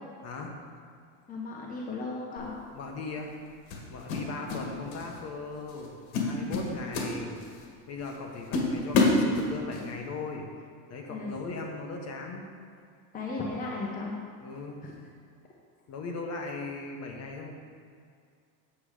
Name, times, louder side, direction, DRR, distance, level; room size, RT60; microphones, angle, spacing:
voice 1, 1.3-2.6 11.1-11.3 13.1-14.2 14.8-14.9, left 3 dB, 20° left, -3 dB, 1.0 m, -35 dB
sound 1, 2.4-2.6 3.7-4.7 4.9-5.2 5.7-5.9 6.1-7.6 8.1-8.2 8.5-9.8, left 3 dB, 85° left, 1.8 m, -27 dB
voice 2, 2.7-3.3 3.9-5.9 6.2-7.4 7.9-10.4 10.9-12.5 14.4-14.8 15.9-17.5, left 3 dB, 35° left, 2 dB, 1.3 m, -38 dB
8.5 x 6.9 x 5.0 m, 2.3 s
cardioid pair, 140°, 43 cm